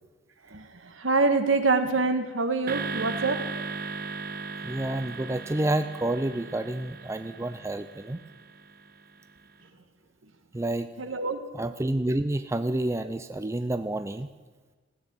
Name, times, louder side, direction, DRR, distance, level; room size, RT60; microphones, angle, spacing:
voice 1, 0.5-3.4 11.0-11.4, right 3 dB, 75° right, 8 dB, 1.5 m, -25 dB
sound 1, 2.7-9.0, right 4 dB, 50° right, 0.8 m, -37 dB
voice 2, 4.6-8.2 10.5-10.9 11.6-14.3, right 1 dB, 15° right, 10 dB, 0.4 m, -29 dB
15.5 x 9.2 x 8.6 m, 1.3 s
head